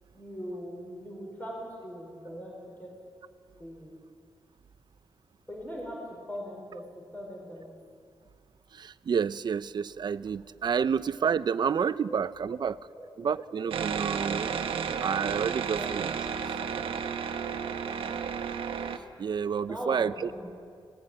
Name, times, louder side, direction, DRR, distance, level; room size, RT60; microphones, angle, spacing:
voice 1, 0.1-2.9 3.6-4.0 5.5-6.0 6.3-6.8 7.1-7.7 12.1-12.2 12.4-12.7 12.9-13.1 15.8-15.9 16.3-16.4 17.6-18.3 19.7-20.5, equal, 20° left, -2 dB, 5.4 m, -41 dB
voice 2, 8.7-12.8 13.2-14.5 15.0-16.1 16.5-16.6 19.2-20.3, right 7 dB, 55° right, 14 dB, 0.6 m, -29 dB
sound 1, 13.7-19.0, right 7 dB, 80° right, 1.1 m, -32 dB
18.5 x 18.5 x 8.8 m, 2.2 s
cardioid pair, 105°, 9 cm